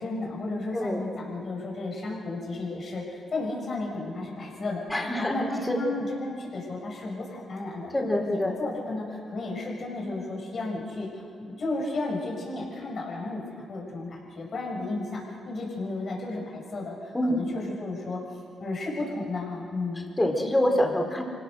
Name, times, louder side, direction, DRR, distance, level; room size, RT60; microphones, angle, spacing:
voice 1, 0.0-11.1 11.4-13.4 13.7-20.1, left 2 dB, 55° left, -1 dB, 6.8 m, -33 dB
voice 2, 4.9-5.8 7.9-8.5 17.1-17.4 20.2-21.2, left 1 dB, 20° left, 2 dB, 4.7 m, -26 dB
27.0 x 17.0 x 6.7 m, 2.6 s
supercardioid pair, 60°, 0 cm